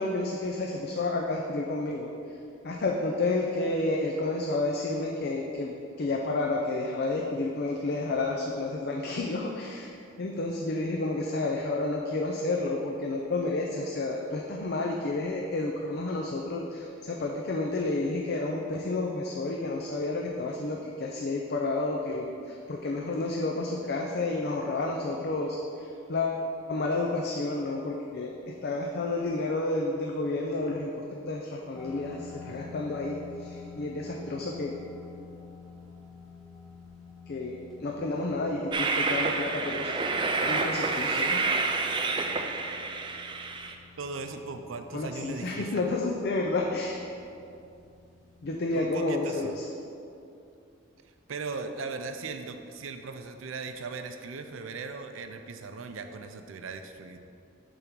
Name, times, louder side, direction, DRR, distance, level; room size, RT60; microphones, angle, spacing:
voice 1, 0.0-2.1 2.6-34.7 37.3-39.9 40.5-41.4 44.9-47.0 48.4-49.5, left 2 dB, 55° left, 1 dB, 0.5 m, -30 dB
sound 1, 31.7-49.0, left 4 dB, ahead, 0.8 m, -49 dB
Train, 38.7-43.7, right 3 dB, 25° right, 0.4 m, -28 dB
voice 2, 44.0-45.8 48.7-49.6 51.3-57.2, right 4 dB, 85° right, 7 dB, 0.5 m, -38 dB
6.8 x 3.5 x 6.0 m, 2.6 s
head